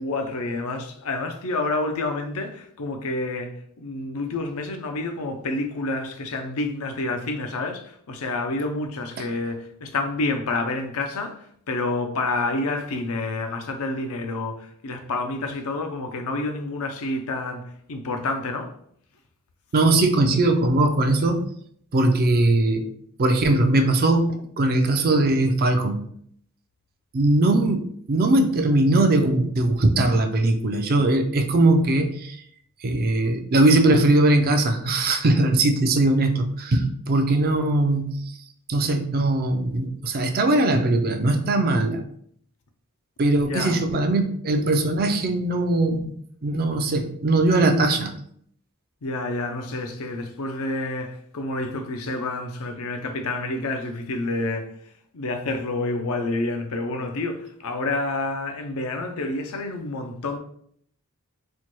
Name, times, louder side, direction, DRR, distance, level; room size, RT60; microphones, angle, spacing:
voice 1, 0.0-3.5 3.8-11.4 11.7-18.7 43.4-43.8 49.0-54.7 55.1-60.4, left 2 dB, 70° left, 0.5 m, -28 dB
voice 2, 19.7-21.5 21.9-22.9 23.2-26.0 27.1-32.4 32.8-38.2 38.7-42.0 43.2-46.1 46.4-48.1, right 2 dB, 45° right, 0.4 m, -20 dB
4.3 x 2.2 x 3.0 m
head